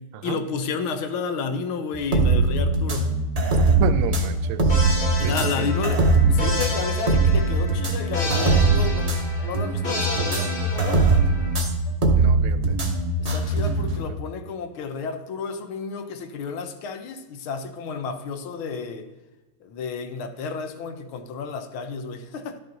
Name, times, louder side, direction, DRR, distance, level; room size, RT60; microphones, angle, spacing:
voice 1, 0.2-3.2 5.2-11.0 13.3-19.1 19.6-22.6, left 5 dB, 75° left, 9 dB, 1.6 m, -31 dB
sound 1, 1.9-14.0, right 3 dB, 50° right, 0.4 m, -21 dB
voice 2, 3.8-4.8 5.2-5.6 12.1-12.8, right 9 dB, 85° right, 12 dB, 1.5 m, -31 dB
sound 2, 4.7-11.6, left 2 dB, 40° left, 2.1 m, -32 dB
11.5 x 5.5 x 3.9 m, 1.2 s
omnidirectional pair, 2.4 m